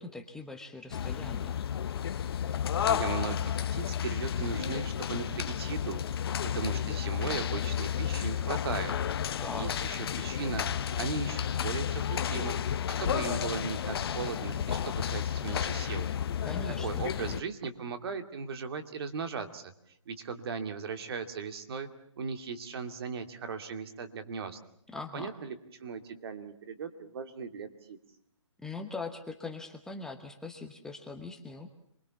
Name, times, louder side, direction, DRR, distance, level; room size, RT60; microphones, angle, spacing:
voice 1, 0.0-1.6 9.4-9.7 16.4-17.0 24.9-25.3 28.6-31.7, left 3 dB, 5° left, 3 dB, 1.1 m, -41 dB
sound 1, 0.9-17.4, left 9 dB, 50° left, 1.1 m, -32 dB
voice 2, 2.8-6.0 6.4-8.9 9.6-12.6 13.0-16.1 16.8-19.7 20.1-21.9 22.2-24.6 25.1-28.0, right 5 dB, 50° right, 7 dB, 2.6 m, -37 dB
27.0 x 22.0 x 7.1 m, 0.67 s
hypercardioid pair, 155°, 16 cm